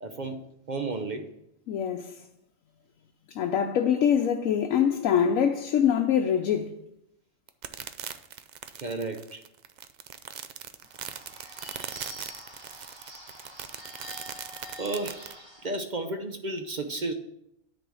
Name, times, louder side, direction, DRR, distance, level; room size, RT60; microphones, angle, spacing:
voice 1, 0.0-1.3 8.8-9.4 14.1-14.2 14.8-15.2 15.6-17.1, right 2 dB, 45° right, 0.7 m, -33 dB
voice 2, 1.7-2.2 3.3-6.7, left 8 dB, 85° left, 1.1 m, -24 dB
sound 1, 7.5-15.3, right 8 dB, 70° right, 0.4 m, -40 dB
Bird / Bell, 10.8-15.8, equal, 20° right, 3.0 m, -46 dB
10.0 x 4.1 x 6.2 m
omnidirectional pair, 1.3 m